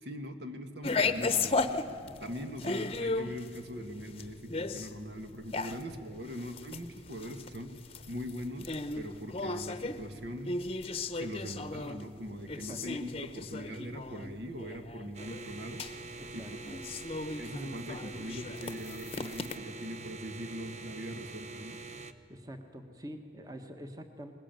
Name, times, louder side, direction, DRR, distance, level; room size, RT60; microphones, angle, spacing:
voice 1, 0.0-7.7 8.1-10.6 11.1-15.8 16.3-16.8 17.3-21.8, equal, 65° right, 6 dB, 1.8 m, -41 dB
sound 1, 0.8-19.6, left 3 dB, 35° left, 0.9 m, -36 dB
voice 2, 12.5-13.0 16.2-16.8 22.3-24.3, equal, 20° right, 6 dB, 1.4 m, -46 dB
sound 2, 15.1-22.1, right 3 dB, 40° right, 1.0 m, -45 dB
21.5 x 20.5 x 9.2 m, 2.5 s
head